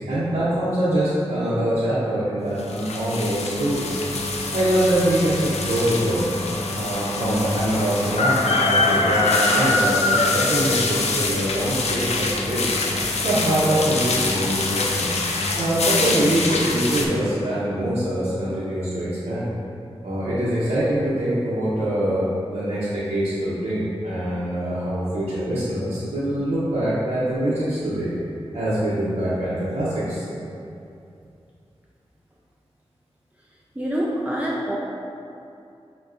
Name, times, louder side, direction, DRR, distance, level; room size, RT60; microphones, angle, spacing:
voice 1, 0.0-3.9 4.5-6.3 6.7-12.7 13.2-15.1 15.5-19.5 20.0-22.3 22.5-28.1 28.5-30.3, right 1 dB, 80° right, -11 dB, 0.7 m, -24 dB
sound 1, 2.6-17.1, left 2 dB, 85° left, 0.4 m, -24 dB
voice 2, 33.8-34.8, equal, 15° right, -6 dB, 0.5 m, -25 dB
6.3 x 2.2 x 2.4 m, 2.6 s
cardioid pair, 40°, 11 cm